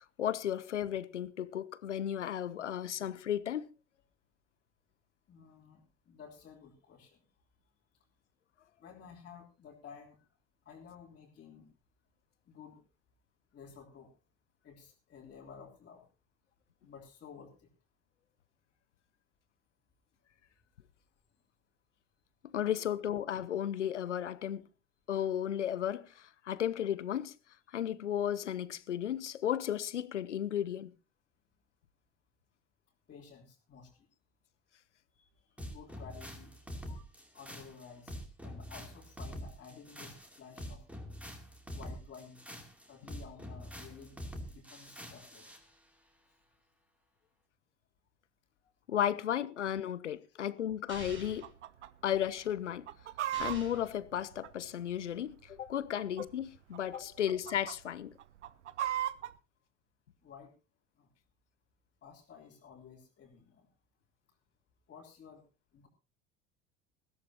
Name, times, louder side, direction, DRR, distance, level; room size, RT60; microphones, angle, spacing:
voice 1, 0.2-3.7 22.4-24.6 25.1-27.3 27.7-30.9 48.9-51.5 52.0-52.9 53.3-58.1, left 10 dB, 75° left, 0.8 m, -34 dB
voice 2, 5.3-7.2 8.8-10.3 10.6-11.7 12.5-12.8 13.5-14.1 14.6-16.1 16.8-17.7 33.1-34.1 35.1-35.3 35.7-36.6 36.8-37.1 37.3-38.2 38.4-40.8 41.7-42.4 42.9-45.5 51.8-51.9 55.9-56.0 60.2-60.5 61.0-61.1 62.0-63.7 64.9-65.4 65.7-65.9, left 6 dB, 30° left, 3.1 m, -53 dB
sound 1, 35.6-45.6, equal, 5° right, 2.7 m, -45 dB
sound 2, 50.9-51.5 53.3-53.9, right 2 dB, 35° right, 6.0 m, -47 dB
Chicken rooster, 51.4-51.9 52.2-52.3 52.7-55.0 55.7-56.4 56.7-57.0 57.3-57.7 58.2-59.3, right 12 dB, 75° right, 0.6 m, -37 dB
20.5 x 15.0 x 2.8 m
figure-of-eight pair, 70°, 36 cm